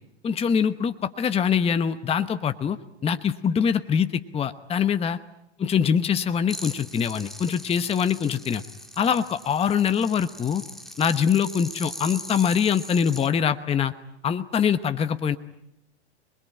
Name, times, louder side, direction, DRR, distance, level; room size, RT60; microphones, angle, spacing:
voice 1, 0.2-2.8 3.0-5.2 5.6-8.6 9.0-10.6 11.0-13.9 14.2-15.4, left 7 dB, 15° left, 11 dB, 0.9 m, -23 dB
sound 1, 6.5-13.3, equal, ahead, 2.0 m, -40 dB
27.0 x 21.0 x 10.0 m, 0.85 s
hypercardioid pair, 105°, 33 cm